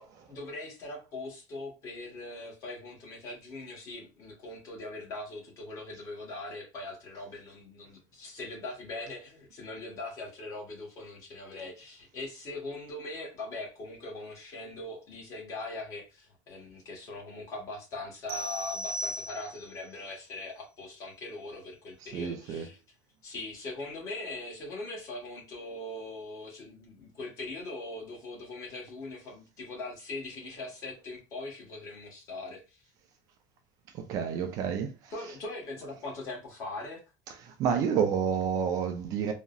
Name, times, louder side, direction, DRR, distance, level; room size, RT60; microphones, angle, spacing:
voice 1, 0.0-22.8 23.2-32.8 35.1-37.0, left 2 dB, 35° left, 1.2 m, -41 dB
sound 1, 18.3-19.8, equal, 70° right, 0.7 m, -37 dB
voice 2, 22.1-22.7 33.9-35.1 37.4-39.3, right 7 dB, 35° right, 0.4 m, -29 dB
3.6 x 2.0 x 2.3 m
cardioid pair, 175°, 10 cm